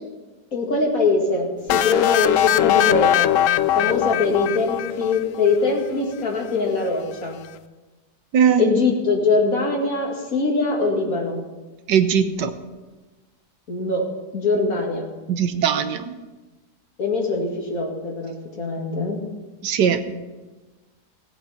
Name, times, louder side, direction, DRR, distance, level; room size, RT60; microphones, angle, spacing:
voice 1, 0.5-3.4 3.8-7.4 8.6-11.4 13.7-14.1 14.3-15.0 17.0-19.2, left 3 dB, 55° left, 0 dB, 2.5 m, -22 dB
sound 1, 1.7-5.5, left 12 dB, 70° left, 0.7 m, -20 dB
voice 2, 11.9-12.5 15.3-16.1 19.6-20.1, right 8 dB, 85° right, 9 dB, 1.6 m, -19 dB
17.5 x 8.6 x 5.8 m, 1.2 s
omnidirectional pair, 1.8 m